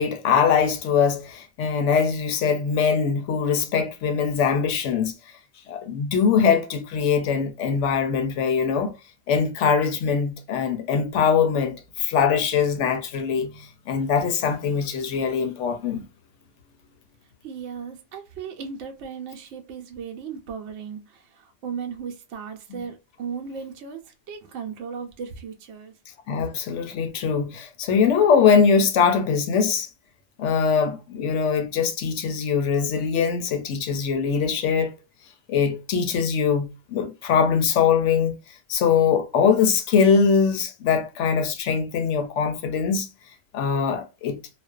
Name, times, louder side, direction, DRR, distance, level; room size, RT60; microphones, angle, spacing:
voice 1, 0.0-5.1 5.7-8.9 9.3-16.0 22.7-22.8 26.3-29.9 30.4-34.9 35.5-38.3 38.7-43.1 43.5-44.4, left 6 dB, 80° left, 0.9 m, -22 dB
voice 2, 17.4-25.9, right 6 dB, 70° right, 0.8 m, -36 dB
2.4 x 2.1 x 2.3 m
omnidirectional pair, 1.2 m